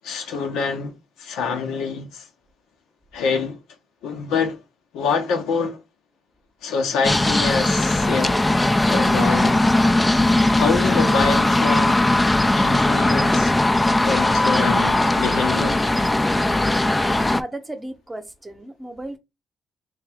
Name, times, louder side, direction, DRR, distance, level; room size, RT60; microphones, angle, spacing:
voice 1, 0.0-2.3 3.1-3.6 4.0-4.6 4.9-5.8 6.6-8.4 8.9-9.6 10.4-12.0 12.6-13.5 14.0-15.9, left 5 dB, 90° left, 0.9 m, -25 dB
sound 1, 7.0-17.4, left 2 dB, 15° left, 0.3 m, -19 dB
voice 2, 17.2-19.2, right 1 dB, 15° right, 0.8 m, -34 dB
3.3 x 2.8 x 3.4 m
cardioid pair, 90°, 0 cm